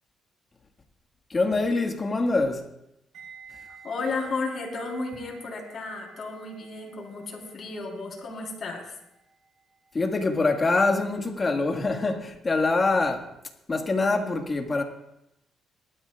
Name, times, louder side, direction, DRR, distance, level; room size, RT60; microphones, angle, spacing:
voice 1, 1.3-2.7 9.9-13.3 13.7-14.8, left 3 dB, 30° left, 1.7 m, -24 dB
sound 1, 3.1-12.1 12.4-12.7, right 6 dB, 85° right, 4.4 m, -52 dB
voice 2, 3.7-8.9, left 3 dB, 50° left, 3.9 m, -33 dB
20.0 x 12.5 x 2.4 m
cardioid pair, 90°, 0 cm